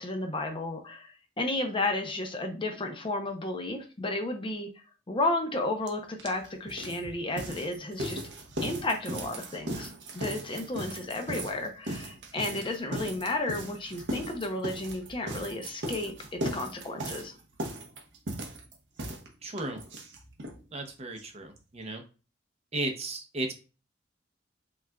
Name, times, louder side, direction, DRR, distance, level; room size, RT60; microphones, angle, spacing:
voice 1, 0.0-4.7 5.1-8.2 8.6-17.3, left 2 dB, 30° left, 4 dB, 0.6 m, -33 dB
sound 1, 5.9-6.0 6.2-20.6 20.9-21.0 21.2-21.3 21.6-21.7, right 1 dB, 70° right, 0.8 m, -37 dB
voice 2, 19.4-19.8 20.7-22.0 22.7-23.6, right 2 dB, 35° right, 4 dB, 0.7 m, -35 dB
5.9 x 2.4 x 2.2 m, 0.34 s
head